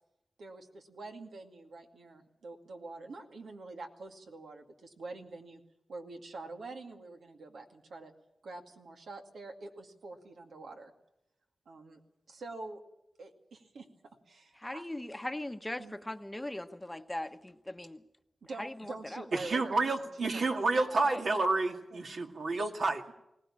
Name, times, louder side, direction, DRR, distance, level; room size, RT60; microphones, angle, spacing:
voice 1, 0.4-5.6 5.9-8.1 8.4-10.9 11.7-12.0 12.3-12.8 13.2-13.9 14.3-14.9 15.8-16.0 18.4-20.1 20.3-21.0 21.4-22.0, right 3 dB, 90° right, 3 dB, 2.3 m, -46 dB
voice 2, 14.6-18.0 18.6-19.3 21.1-21.2, left 1 dB, 15° left, 9 dB, 0.9 m, -40 dB
voice 3, 19.3-23.0, right 3 dB, 70° right, 3 dB, 2.2 m, -30 dB
21.5 x 18.0 x 8.6 m, 0.85 s
wide cardioid pair, 75°, 0 cm